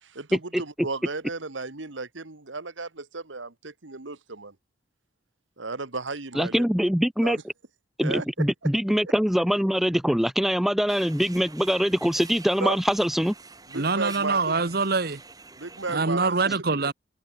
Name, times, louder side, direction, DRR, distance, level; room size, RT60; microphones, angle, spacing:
voice 1, 0.0-4.5 5.6-6.6 7.2-7.4 8.0-8.5 12.6-12.8 13.7-14.4 15.6-16.4, right 3 dB, 85° right, 1.9 m, -34 dB
voice 2, 6.3-7.4 8.0-13.3, equal, ahead, 0.3 m, -23 dB
sound 1, 10.9-16.0, right 4 dB, 20° right, 4.9 m, -46 dB
voice 3, 13.7-15.2 15.9-16.9, right 3 dB, 55° right, 1.1 m, -24 dB
head